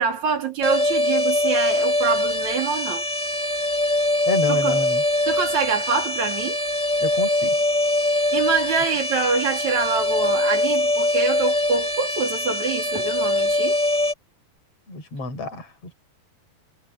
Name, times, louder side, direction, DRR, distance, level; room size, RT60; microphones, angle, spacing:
voice 1, 0.0-3.0 4.5-4.8 5.3-6.6 8.3-13.8, right 5 dB, 50° right, 4.5 m, -25 dB
sound 1, 0.6-14.1, left 1 dB, ahead, 2.2 m, -23 dB
voice 2, 4.3-5.0 7.0-7.6 14.9-15.7, left 3 dB, 40° left, 6.7 m, -28 dB
omnidirectional pair, 4.2 m